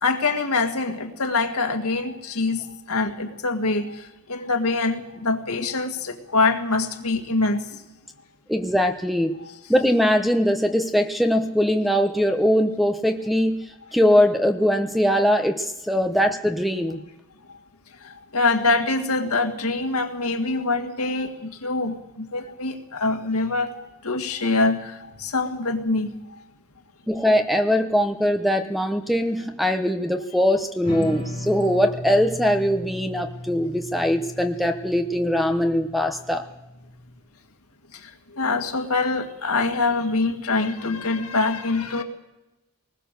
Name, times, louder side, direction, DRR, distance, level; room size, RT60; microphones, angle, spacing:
voice 1, 0.0-7.7 9.4-9.5 17.5-17.6 18.0-26.4 38.0-42.0, left 3 dB, 85° left, 5 dB, 2.1 m, -25 dB
voice 2, 8.5-9.4 9.7-17.0 27.1-36.4, equal, ahead, 6 dB, 0.9 m, -21 dB
sound 1, 30.8-37.1, left 1 dB, 20° left, 6.8 m, -36 dB
21.5 x 20.0 x 6.8 m, 0.98 s
head